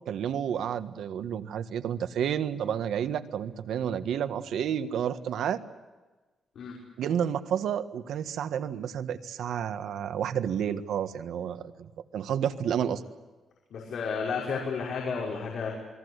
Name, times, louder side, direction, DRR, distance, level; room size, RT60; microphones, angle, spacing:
voice 1, 0.0-5.6 7.0-13.0, right 9 dB, 85° right, 10 dB, 1.5 m, -30 dB
voice 2, 13.7-15.7, left 5 dB, 65° left, -2 dB, 6.0 m, -32 dB
28.0 x 21.5 x 8.2 m, 1.2 s
wide cardioid pair, 145°, 0 cm